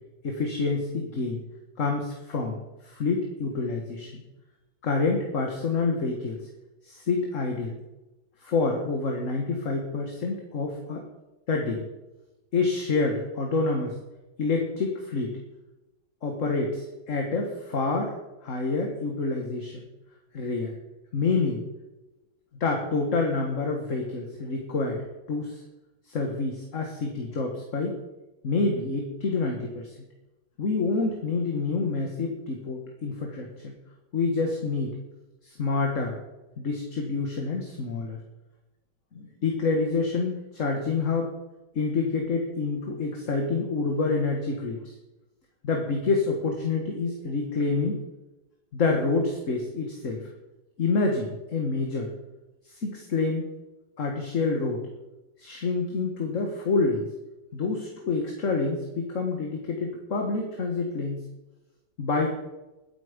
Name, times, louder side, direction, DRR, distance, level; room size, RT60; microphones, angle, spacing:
voice 1, 0.2-1.4 1.8-2.6 2.8-4.2 4.8-6.4 6.8-7.7 8.4-11.0 11.5-11.8 12.5-14.0 14.4-15.4 16.2-18.1 18.4-19.9 20.3-20.7 21.1-21.6 22.6-25.0 25.3-25.6 26.1-28.0 28.4-29.9 30.6-33.7 34.1-35.0 35.4-36.2 36.6-38.2 39.2-41.3 41.8-44.9 45.6-48.0 48.7-50.2 50.8-52.1 52.7-53.5 54.0-54.8 55.4-57.1 57.5-61.2 62.0-62.3, left 3 dB, 45° left, 2 dB, 1.9 m, -27 dB
20.0 x 8.6 x 5.2 m, 1.0 s
omnidirectional pair, 1.9 m